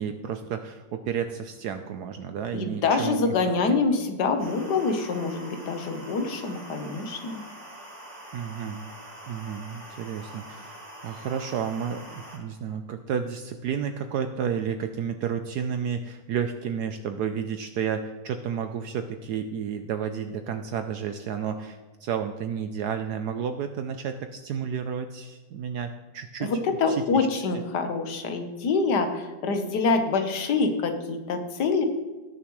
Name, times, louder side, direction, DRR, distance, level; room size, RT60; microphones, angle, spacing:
voice 1, 0.0-3.2 8.3-8.9 9.3-27.0 27.3-27.6, right 7 dB, 70° right, 7 dB, 1.1 m, -31 dB
voice 2, 2.5-7.4 26.4-31.8, left 4 dB, 65° left, 6 dB, 1.7 m, -26 dB
sound 1, 4.4-12.4, right 1 dB, 30° right, 2.3 m, -44 dB
17.5 x 7.0 x 3.2 m, 1.3 s
omnidirectional pair, 1.9 m